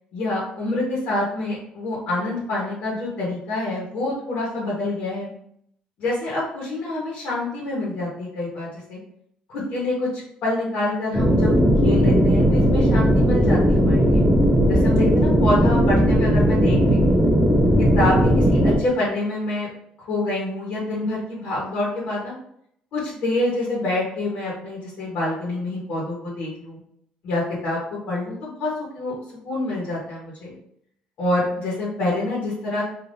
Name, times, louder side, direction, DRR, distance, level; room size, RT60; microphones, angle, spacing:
voice 1, 0.1-5.3 6.0-9.0 9.5-14.3 14.7-17.2 17.8-19.7 20.1-22.3 22.9-26.8 27.2-29.2 29.4-30.5 31.2-32.8, left 2 dB, 65° left, -6 dB, 1.3 m, -26 dB
sound 1, 11.1-18.8, equal, 5° right, 0.6 m, -17 dB
3.4 x 2.8 x 2.7 m, 0.70 s
cardioid pair, 115°, 3 cm